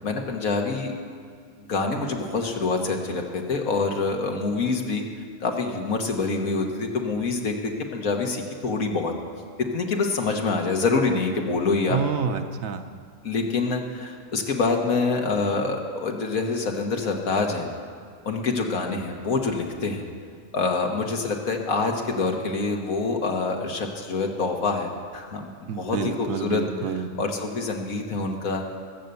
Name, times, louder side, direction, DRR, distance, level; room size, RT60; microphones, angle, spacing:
voice 1, 0.0-0.9 1.6-5.0 5.4-9.1 9.7-12.0 13.2-17.7 18.3-20.1 20.5-25.5 25.8-26.6 27.2-28.6, left 4 dB, 85° left, 2 dB, 1.9 m, -26 dB
voice 2, 11.9-12.8 25.7-27.1, right 6 dB, 75° right, 7 dB, 1.3 m, -28 dB
22.0 x 7.9 x 6.9 m, 2.1 s
omnidirectional pair, 1.4 m